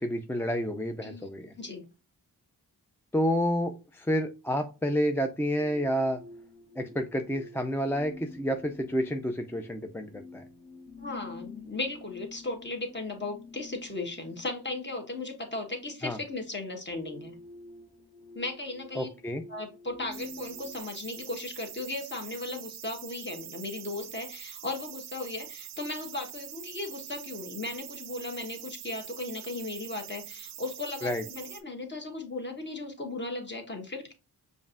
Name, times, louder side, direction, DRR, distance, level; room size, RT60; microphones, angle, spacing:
voice 1, 0.0-1.5 3.1-6.2 6.8-10.4 16.0-16.2 19.0-19.4 31.0-31.2, equal, 5° left, 6 dB, 0.3 m, -29 dB
voice 2, 1.6-1.9 11.0-17.4 18.3-19.1 19.5-34.1, left 2 dB, 30° left, 3 dB, 1.1 m, -36 dB
sound 1, 5.5-20.8, left 3 dB, 65° left, 1.1 m, -49 dB
sound 2, 20.1-31.6, right 11 dB, 85° right, 0.5 m, -44 dB
5.1 x 2.5 x 2.5 m, 0.31 s
cardioid pair, 60°, 39 cm